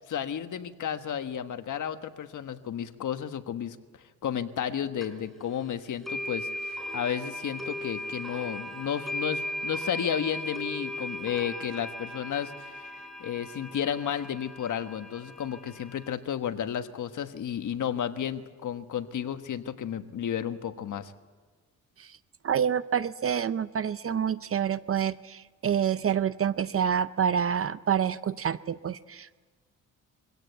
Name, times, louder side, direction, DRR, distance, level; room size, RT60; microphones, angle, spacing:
voice 1, 0.1-3.8 4.2-21.1, left 9 dB, 65° left, 8 dB, 1.4 m, -32 dB
sound 1, 5.0-5.1 6.0-16.1, equal, ahead, 4.8 m, -37 dB
voice 2, 22.4-29.4, right 8 dB, 45° right, 15 dB, 0.6 m, -27 dB
23.5 x 17.0 x 8.1 m, 1.5 s
cardioid pair, 100°, 33 cm